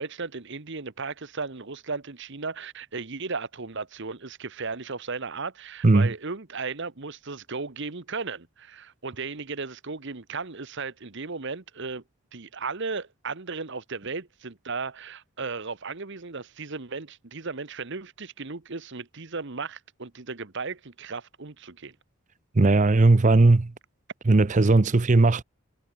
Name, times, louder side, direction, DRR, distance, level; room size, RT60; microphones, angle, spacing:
voice 1, 0.0-12.0 12.3-22.0, right 4 dB, 55° right, 1.2 m, -35 dB
voice 2, 5.8-6.1 22.5-23.7 24.3-25.4, right 3 dB, 35° right, 0.6 m, -18 dB
head